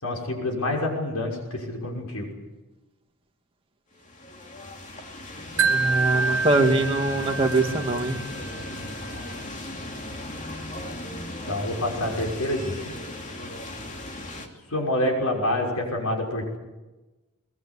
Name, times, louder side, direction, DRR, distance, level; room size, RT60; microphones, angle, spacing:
voice 1, 0.0-2.3 11.5-12.9 14.7-16.6, left 1 dB, 85° left, 1 dB, 6.0 m, -27 dB
sound 1, 3.9-14.5, left 1 dB, 35° left, 2.8 m, -37 dB
voice 2, 5.6-8.2, right 2 dB, 25° right, 2 dB, 2.1 m, -23 dB
Wind chime, 5.6-8.7, right 4 dB, 60° right, 1.4 m, -27 dB
22.0 x 20.5 x 8.5 m, 1.1 s
head